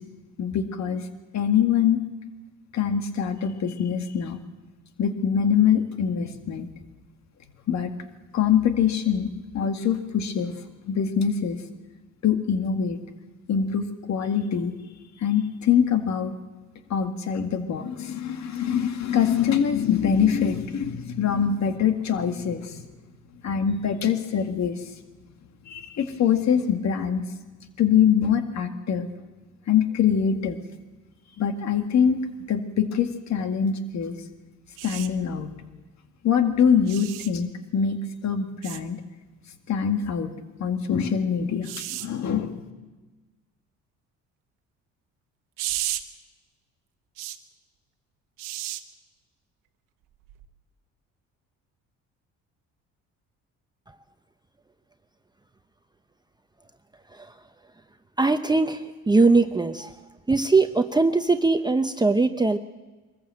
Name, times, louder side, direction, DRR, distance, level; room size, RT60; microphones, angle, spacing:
voice 1, 0.4-1.1 1.3-2.0 2.7-4.4 5.0-6.7 7.7-7.9 8.3-10.5 10.9-11.6 12.2-13.0 13.5-14.7 15.2-16.4 16.9-22.9 23.4-24.8 25.7-27.3 27.8-29.1 29.7-30.6 31.4-32.2 32.5-34.2 34.8-35.5 36.2-39.0 39.7-40.3 40.6-42.6, left 8 dB, 60° left, 6 dB, 2.0 m, -24 dB
sound 1, 34.8-35.1 36.9-37.3 38.6-38.8 41.6-42.1 45.6-46.0 47.2-47.4 48.4-48.8 50.3-50.5, right 14 dB, 90° right, 1.2 m, -32 dB
voice 2, 57.1-57.4 58.2-60.0 60.3-62.6, right 3 dB, 15° right, 7 dB, 0.9 m, -21 dB
23.5 x 14.5 x 7.7 m, 1.2 s
cardioid pair, 85°, 32 cm